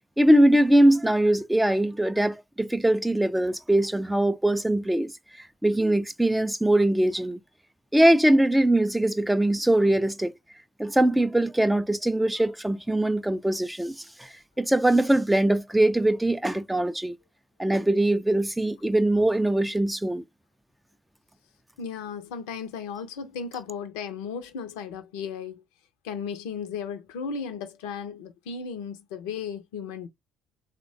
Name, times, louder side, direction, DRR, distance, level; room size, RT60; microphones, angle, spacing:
voice 1, 0.2-5.1 5.6-7.4 7.9-10.3 10.8-17.2 17.6-20.2, right 1 dB, 5° right, 0.3 m, -22 dB
voice 2, 21.8-25.6 26.0-30.1, left 6 dB, 70° left, 0.5 m, -35 dB
3.1 x 2.1 x 2.6 m
figure-of-eight pair, 50°, 0 cm